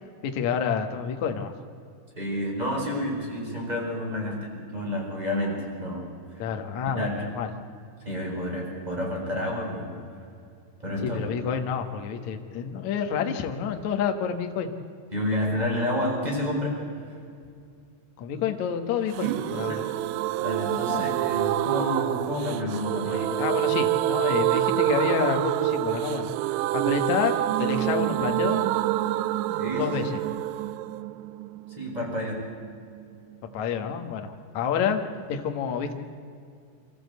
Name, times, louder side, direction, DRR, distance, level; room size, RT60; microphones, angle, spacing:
voice 1, 0.2-1.5 6.4-7.5 11.0-14.7 18.2-19.8 20.9-21.1 23.0-26.3 26.7-28.6 29.8-30.1 33.5-35.0 35.3-35.9, left 7 dB, 90° left, 5 dB, 1.6 m, -28 dB
voice 2, 2.2-6.4 7.0-7.2 8.0-10.0 10.8-11.2 15.1-16.8 17.1-17.2 19.2-19.6 20.4-23.3 29.6-30.0 31.7-32.4, left 1 dB, 10° right, -1 dB, 4.0 m, -30 dB
sound 1, 19.1-32.7 33.0-33.1 33.3-33.4, right 14 dB, 80° right, 2.6 m, -27 dB
25.5 x 14.5 x 8.1 m, 2.4 s
omnidirectional pair, 5.7 m